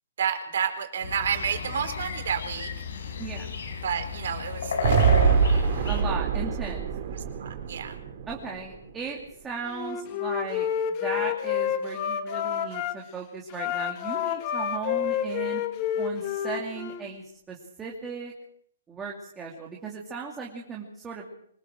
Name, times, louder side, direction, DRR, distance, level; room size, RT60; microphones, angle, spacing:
voice 1, 0.2-2.7 3.8-5.4 7.4-8.0, right 7 dB, 60° right, 7 dB, 4.0 m, -30 dB
sound 1, 1.0-6.0, left 4 dB, 70° left, 5.3 m, -32 dB
voice 2, 3.2-3.5 5.9-6.8 8.3-10.7 11.0-15.6 16.0-18.3 18.9-21.2, right 5 dB, 10° right, -2 dB, 2.7 m, -36 dB
sound 2, 4.8-9.0, right 7 dB, 40° right, 3.3 m, -25 dB
Wind instrument woodwind instrument, 9.6-12.9 13.5-17.1, left 9 dB, 30° left, 1.8 m, -29 dB
25.0 x 19.5 x 6.5 m, 0.68 s
hypercardioid pair, 165°, 0 cm